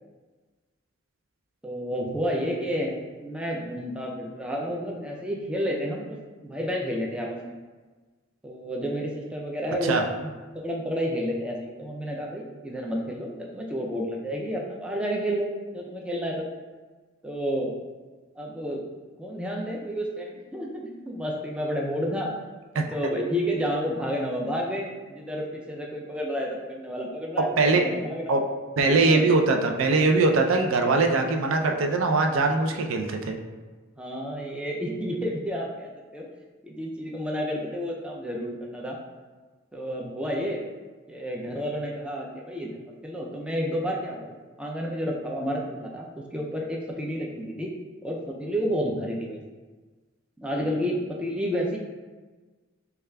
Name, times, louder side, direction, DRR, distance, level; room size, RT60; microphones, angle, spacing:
voice 1, 1.6-7.5 8.4-15.5 15.7-16.5 17.2-17.7 18.4-18.8 19.2-28.4 28.9-29.2 34.0-36.3 36.6-39.0 39.7-40.6 41.1-42.8 43.0-47.7 48.0-49.4 50.4-51.8, equal, 5° right, -1 dB, 0.3 m, -30 dB
voice 2, 27.6-27.9 28.3-28.4 28.8-33.4, right 3 dB, 85° right, 3 dB, 0.4 m, -21 dB
6.5 x 2.3 x 2.2 m, 1.3 s
head